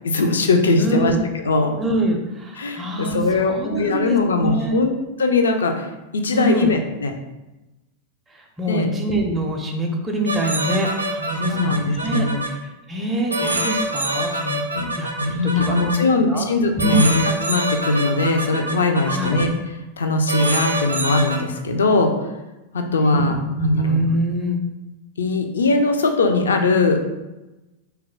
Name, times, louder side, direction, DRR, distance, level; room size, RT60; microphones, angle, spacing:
voice 1, 0.0-1.1 1.4-1.7 2.6-4.9 5.2-5.9 6.1-7.1 8.7-8.9 11.4-12.4 14.7-14.9 15.2-19.5 20.0-22.1 22.7-24.0 25.2-27.0, left 3 dB, 70° left, 5 dB, 0.4 m, -20 dB
voice 2, 0.8-1.2 1.8-4.8 6.3-6.7 8.3-12.3 12.9-14.6 15.0-15.8 16.3-16.5 16.7-17.0 19.1-19.4 23.1-24.6, right 1 dB, 10° right, 0 dB, 0.4 m, -24 dB
sound 1, 10.3-12.5 13.3-16.0 16.8-19.5 20.3-21.4, right 1 dB, 90° right, 0.4 m, -25 dB
3.1 x 2.3 x 3.5 m, 1.0 s
figure-of-eight pair, 90°, 0 cm